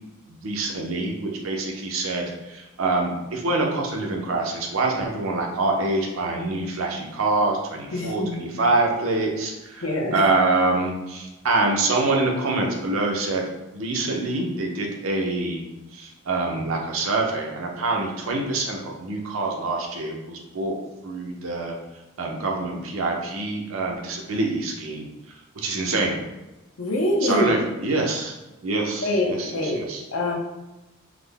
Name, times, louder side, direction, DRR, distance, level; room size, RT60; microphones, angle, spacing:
voice 1, 0.3-9.8 10.1-13.4 13.7-15.6 15.9-20.8 21.0-21.8 22.2-25.1 25.6-26.2 27.2-28.3 28.6-30.0, right 2 dB, 75° right, 1 dB, 0.6 m, -25 dB
voice 2, 7.9-8.4 9.8-10.2 26.8-27.5 29.0-29.8 30.1-30.3, left 1 dB, 75° left, 0 dB, 0.7 m, -24 dB
3.6 x 2.1 x 3.3 m, 1.0 s
head